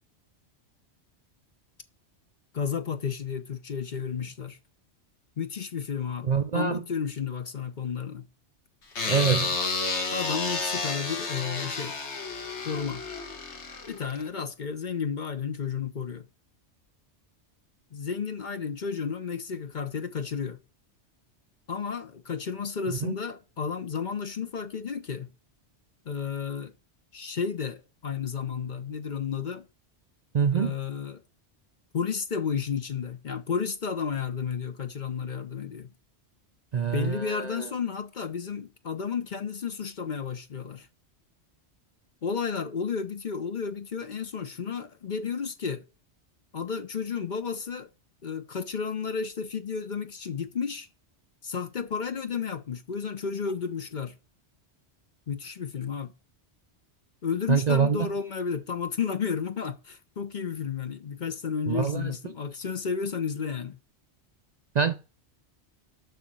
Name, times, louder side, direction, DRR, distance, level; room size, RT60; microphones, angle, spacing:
voice 1, 2.5-4.6 5.4-8.3 10.1-11.9 12.6-13.0 13.9-16.3 17.9-20.6 21.7-25.3 26.0-26.7 27.1-29.7 30.5-31.2 31.9-35.9 36.9-40.9 42.2-45.8 46.5-47.9 48.2-50.9 51.4-54.1 55.3-56.1 57.2-63.8, left 6 dB, 45° left, 0.8 m, -32 dB
voice 2, 6.3-6.8 9.1-9.6 22.9-23.1 30.3-30.7 36.7-37.6 57.5-58.1 61.7-62.1 64.8-65.0, right 6 dB, 50° right, 0.5 m, -25 dB
sound 1, 9.0-14.3, left 3 dB, 75° left, 1.8 m, -31 dB
6.9 x 5.9 x 7.5 m
omnidirectional pair, 1.2 m